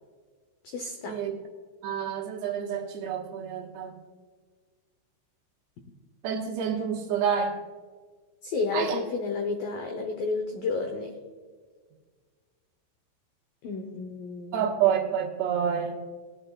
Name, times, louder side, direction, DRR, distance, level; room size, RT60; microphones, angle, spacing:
voice 1, 0.6-1.2 8.4-11.1 13.6-14.8, left 3 dB, 85° left, 4 dB, 1.9 m, -31 dB
voice 2, 1.8-4.0 6.2-7.6 8.7-9.0 14.5-16.0, right 8 dB, 70° right, 0 dB, 3.3 m, -28 dB
19.5 x 11.0 x 2.4 m, 1.5 s
omnidirectional pair, 5.5 m